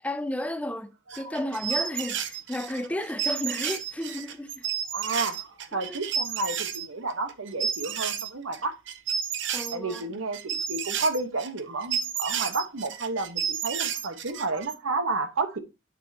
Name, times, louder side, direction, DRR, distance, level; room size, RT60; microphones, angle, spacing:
voice 1, 0.0-4.7 5.7-6.0 9.5-10.2, left 1 dB, 5° left, 0.5 m, -33 dB
sound 1, 1.1-6.9 7.1-8.6 8.9-14.7, right 8 dB, 60° right, 0.8 m, -31 dB
voice 2, 4.9-8.7 9.7-15.6, right 3 dB, 80° right, 1.3 m, -31 dB
9.0 x 6.4 x 2.9 m
head